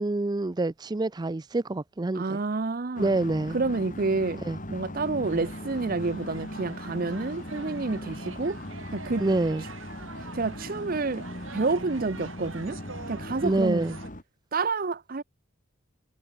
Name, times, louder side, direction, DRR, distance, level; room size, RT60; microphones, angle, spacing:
voice 1, 0.0-2.4 3.0-3.6 4.5-4.6 9.2-9.6 13.4-14.0, right 2 dB, 20° right, 0.4 m, -26 dB
voice 2, 2.1-3.1 3.5-4.4 4.7-8.6 8.9-9.2 10.3-11.2 11.5-12.8 13.1-13.8 14.5-15.2, right 3 dB, 45° right, 0.7 m, -29 dB
sound 1, 3.0-14.2, left 1 dB, 40° left, 4.2 m, -39 dB
sound 2, 5.3-14.1, right 4 dB, 80° right, 3.4 m, -45 dB
head